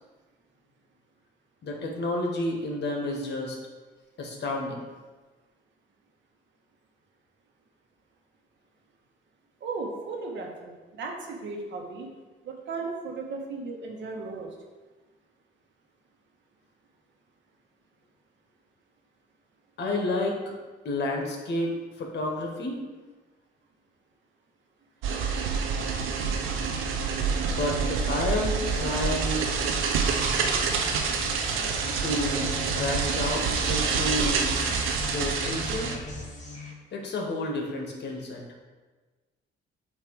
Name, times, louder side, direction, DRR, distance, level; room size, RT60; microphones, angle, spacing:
voice 1, 1.6-3.6 4.2-4.9 19.8-20.4 20.8-22.8 27.5-29.5 32.0-34.6 35.1-35.9 36.9-38.4, left 2 dB, 60° left, 1 dB, 1.4 m, -30 dB
voice 2, 9.6-12.1 12.4-14.5, right 3 dB, 70° right, 1 dB, 1.3 m, -36 dB
sound 1, 25.0-36.0, right 5 dB, 90° right, 0.7 m, -27 dB
sound 2, 25.8-36.3, right 1 dB, 40° right, 1.4 m, -41 dB
sound 3, 29.9-36.7, left 2 dB, 35° left, 1.6 m, -40 dB
7.9 x 2.9 x 4.7 m, 1.3 s
cardioid pair, 90°, 20 cm